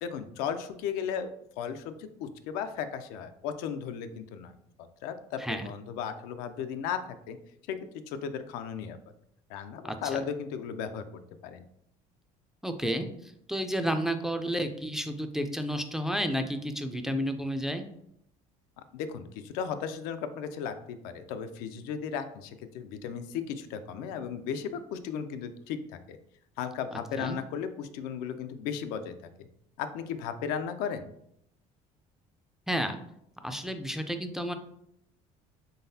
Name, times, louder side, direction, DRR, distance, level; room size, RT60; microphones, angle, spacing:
voice 1, 0.0-1.3 1.6-4.5 4.8-7.0 7.3-7.4 7.7-7.8 8.1-9.0 9.5-11.0 11.4-11.6 18.8-26.2 26.6-29.1 29.8-31.1, left 7 dB, 85° left, 9 dB, 0.4 m, -35 dB
voice 2, 9.8-10.2 12.6-17.8 27.2-27.4 32.7-33.0 33.4-34.5, equal, 5° right, 6 dB, 0.3 m, -31 dB
3.9 x 3.4 x 2.7 m, 0.73 s
cardioid pair, 115°, 15 cm